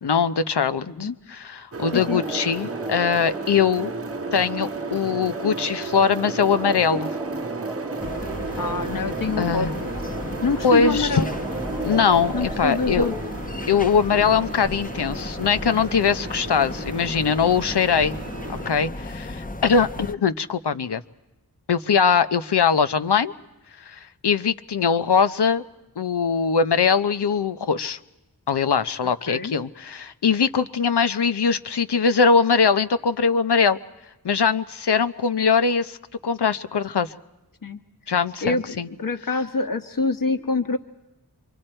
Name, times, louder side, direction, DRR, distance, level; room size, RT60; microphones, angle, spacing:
voice 1, 0.0-3.9 4.3-7.1 9.4-9.7 10.6-11.2 11.8-13.1 13.7-18.2 18.7-21.0 21.7-23.3 23.9-25.6 26.0-28.0 28.5-33.8 34.2-36.0 36.2-37.1 38.1-38.9, left 6 dB, 90° left, 12 dB, 0.8 m, -21 dB
sound 1, 1.7-18.7, right 4 dB, 35° right, 0.8 m, -35 dB
sound 2, 1.8-13.3, right 2 dB, 10° right, 1.0 m, -35 dB
voice 2, 1.9-2.2 8.6-9.9 10.4-11.3 12.3-13.1 29.3-29.5 37.6-37.8 38.4-40.8, left 3 dB, 55° left, 8 dB, 1.3 m, -26 dB
sound 3, 8.0-20.1, left 2 dB, 20° left, 0.8 m, -34 dB
27.5 x 24.5 x 4.4 m, 1.0 s
wide cardioid pair, 55°, 39 cm